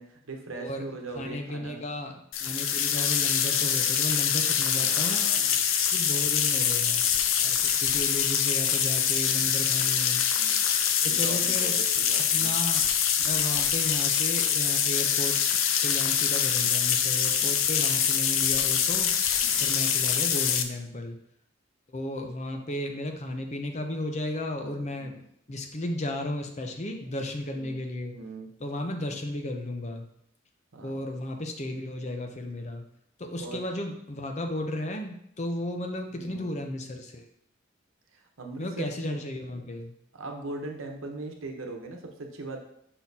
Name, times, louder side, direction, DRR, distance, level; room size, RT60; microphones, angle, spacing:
voice 1, 0.0-1.8 4.7-5.6 10.3-10.7 11.0-12.5 19.4-19.7 25.0-25.2 27.0-27.2 27.5-27.8 28.1-28.5 30.7-31.0 33.4-33.6 36.1-36.5 38.1-39.2 40.1-42.6, right 3 dB, 90° right, 2 dB, 1.0 m, -40 dB
voice 2, 0.5-0.8 1.1-5.3 5.9-7.1 7.4-10.2 11.0-11.7 12.3-12.8 13.2-15.4 15.8-19.1 19.6-21.2 21.9-25.2 25.5-28.1 28.6-30.0 30.8-32.8 33.2-37.2 38.6-39.9, left 1 dB, 35° left, 4 dB, 0.7 m, -34 dB
sound 1, 2.3-20.6, left 8 dB, 90° left, 0.5 m, -25 dB
6.3 x 5.7 x 2.8 m, 0.73 s
head